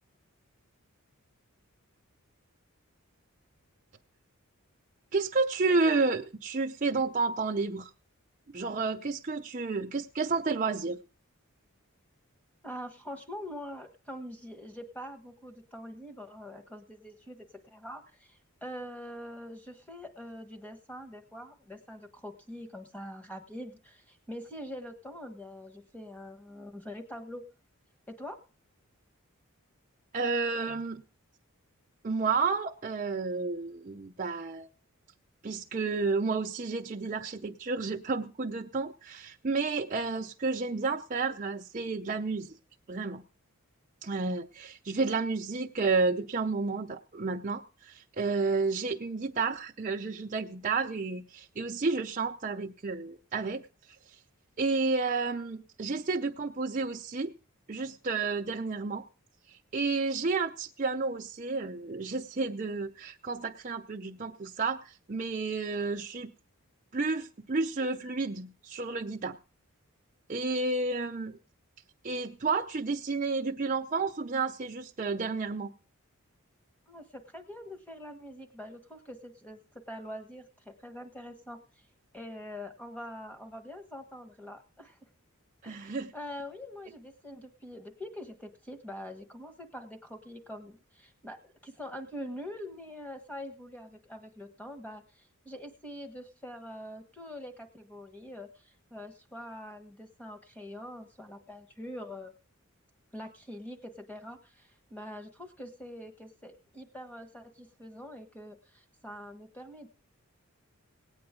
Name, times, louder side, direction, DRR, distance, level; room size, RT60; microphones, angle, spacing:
voice 1, 5.1-7.9 8.5-11.0 30.1-31.0 32.0-34.7 35.4-42.6 42.9-43.2 44.0-53.6 54.6-57.3 57.7-59.0 59.5-66.3 66.9-69.4 70.3-71.4 72.0-75.7 85.6-86.1, right 4 dB, 35° right, 1 dB, 0.5 m, -31 dB
voice 2, 12.6-27.4 28.1-28.4 76.9-79.6 79.9-81.6 82.1-85.0 85.6-102.3 103.1-109.9, left 1 dB, 5° left, 6 dB, 1.3 m, -44 dB
18.0 x 8.7 x 3.7 m, 0.35 s
head